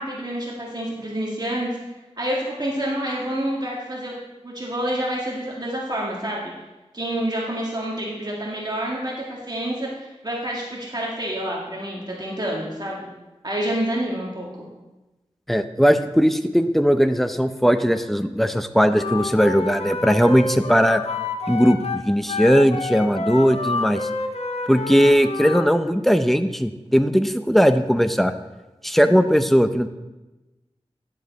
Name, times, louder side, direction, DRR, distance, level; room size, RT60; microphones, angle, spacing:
voice 1, 0.0-1.7 2.2-4.2 4.4-6.5 6.9-13.1 13.4-14.7, right 1 dB, 40° right, -4 dB, 1.7 m, -28 dB
voice 2, 15.5-21.0 21.5-24.0 24.7-28.3 28.8-29.9, equal, ahead, 9 dB, 0.6 m, -18 dB
Wind instrument woodwind instrument, 18.9-25.7, left 3 dB, 70° left, 0.9 m, -28 dB
10.0 x 7.2 x 4.1 m, 1.1 s
wide cardioid pair, 55°, 11 cm